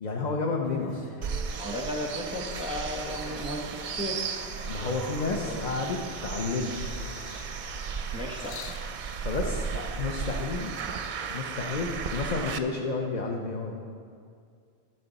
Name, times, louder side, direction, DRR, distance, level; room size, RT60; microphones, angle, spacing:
voice 1, 0.0-1.1 4.6-6.7 9.2-10.7 11.3-13.7, left 3 dB, 45° left, 0 dB, 0.8 m, -31 dB
sound 1, 0.6-5.9, left 2 dB, 30° left, 0.4 m, -47 dB
sound 2, 1.2-12.6, right 6 dB, 55° right, 0.6 m, -35 dB
voice 2, 1.5-4.2 5.2-5.7 8.1-8.6, equal, 5° right, 1 dB, 0.9 m, -35 dB
sound 3, 2.4-4.2 4.8-5.8 6.3-8.9 9.8-9.9, left 6 dB, 80° left, 0.8 m, -46 dB
13.5 x 6.9 x 4.0 m, 2.2 s
omnidirectional pair, 1.1 m